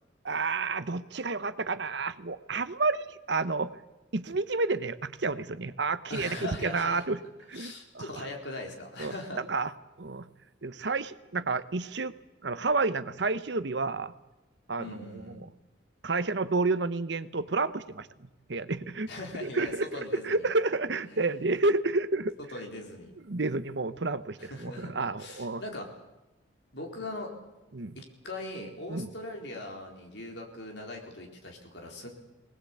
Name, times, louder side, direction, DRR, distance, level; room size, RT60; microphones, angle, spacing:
voice 1, 0.2-3.8 4.1-7.2 7.5-8.1 9.0-9.7 10.0-10.3 10.6-12.1 12.4-14.1 14.7-15.3 16.0-19.1 19.4-22.3 23.3-25.6 27.7-28.0 28.9-29.1, right 3 dB, 65° right, 13 dB, 0.9 m, -30 dB
voice 2, 6.1-7.0 7.5-9.4 14.8-15.4 19.1-20.5 21.1-21.4 22.5-23.1 24.4-25.9 26.7-27.3 27.9-32.1, left 2 dB, 65° left, 1 dB, 4.2 m, -40 dB
20.5 x 19.5 x 8.5 m, 1.0 s
head